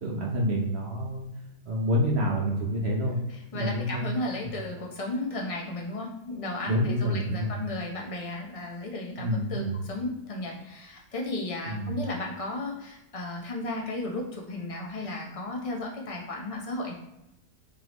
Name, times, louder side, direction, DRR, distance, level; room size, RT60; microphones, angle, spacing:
voice 1, 0.0-1.3 1.7-3.2 3.5-4.5 6.7-7.6 9.2-9.8 11.7-12.0, equal, 55° right, -2 dB, 0.7 m, -28 dB
voice 2, 3.1-16.9, left 2 dB, 35° left, -1 dB, 0.5 m, -34 dB
3.7 x 3.7 x 3.0 m, 0.87 s
omnidirectional pair, 1.7 m